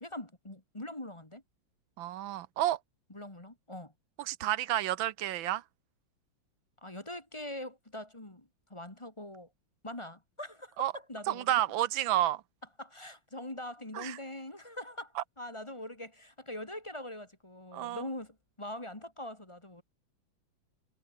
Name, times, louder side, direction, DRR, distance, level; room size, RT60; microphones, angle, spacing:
voice 1, 0.0-1.4 3.1-3.9 6.8-9.5 9.8-11.5 12.8-19.8, left 1 dB, 15° left, 2.1 m, -43 dB
voice 2, 2.0-2.8 4.2-5.6 10.8-10.9 11.3-12.4 13.9-14.2 15.2-15.3 17.7-18.0, right 13 dB, 80° right, 1.6 m, -30 dB
omnidirectional pair, 2.1 m